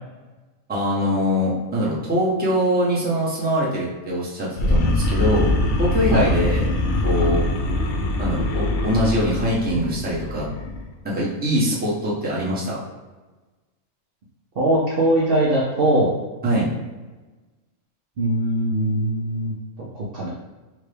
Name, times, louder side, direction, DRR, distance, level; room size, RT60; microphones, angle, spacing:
voice 1, 0.7-5.5 5.8-6.7 7.0-7.5 8.2-10.4 11.0-12.8 16.4-16.7, equal, 10° right, -6 dB, 0.7 m, -23 dB
sound 1, 4.6-10.8, left 1 dB, 80° left, 0.4 m, -23 dB
voice 2, 14.6-16.1 18.2-20.3, right 1 dB, 55° right, -5 dB, 0.7 m, -21 dB
4.4 x 2.2 x 3.3 m, 1.2 s
omnidirectional pair, 1.4 m